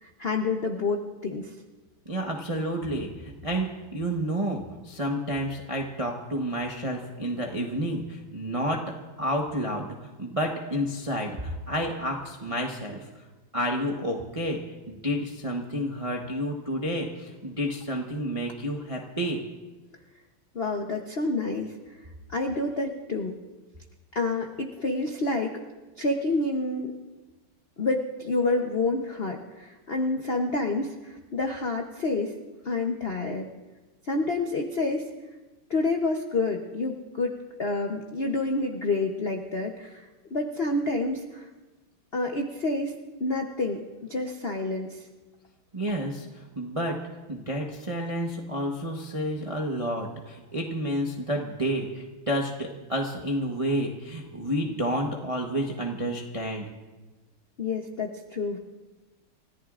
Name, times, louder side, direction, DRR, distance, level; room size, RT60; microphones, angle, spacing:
voice 1, 0.0-1.5 20.5-21.7 22.3-23.4 24.1-25.5 26.0-26.9 27.8-32.3 32.6-33.5 34.0-35.0 35.7-41.5 42.1-42.9 43.2-45.1 57.6-58.6, left 2 dB, 60° left, 2 dB, 0.6 m, -28 dB
voice 2, 2.1-13.0 13.5-14.6 14.9-19.4 45.7-47.0 47.3-56.7, equal, 25° right, 0 dB, 0.7 m, -30 dB
29.5 x 14.5 x 2.5 m, 1.2 s
omnidirectional pair, 2.4 m